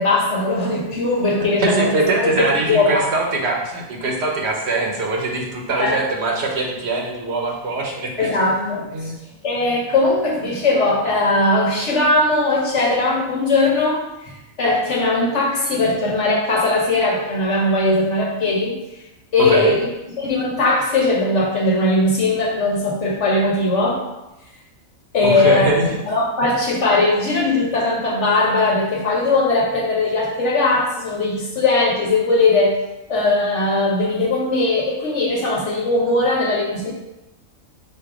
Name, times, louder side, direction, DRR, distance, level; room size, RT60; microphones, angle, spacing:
voice 1, 0.0-3.1 5.8-6.0 8.2-9.1 9.4-18.8 19.3-19.9 20.2-24.0 25.1-25.7 26.1-32.8 33.1-36.9, left 2 dB, 60° left, -3 dB, 1.1 m, -19 dB
voice 2, 1.6-9.1 19.4-19.8 25.2-25.9, right 2 dB, 55° right, 0 dB, 1.0 m, -22 dB
4.3 x 2.4 x 4.8 m, 0.96 s
omnidirectional pair, 1.4 m